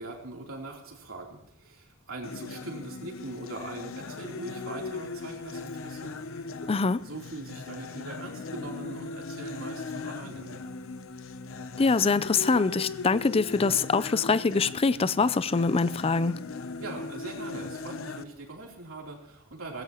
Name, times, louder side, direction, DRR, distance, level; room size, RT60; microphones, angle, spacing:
voice 1, 0.0-6.1 7.0-10.6 16.8-19.8, right 2 dB, 80° right, 3.4 m, -41 dB
sound 1, 2.2-18.2, left 3 dB, 70° left, 0.7 m, -39 dB
voice 2, 6.7-7.0 11.8-16.4, left 4 dB, 30° left, 0.4 m, -24 dB
17.0 x 16.0 x 3.0 m
head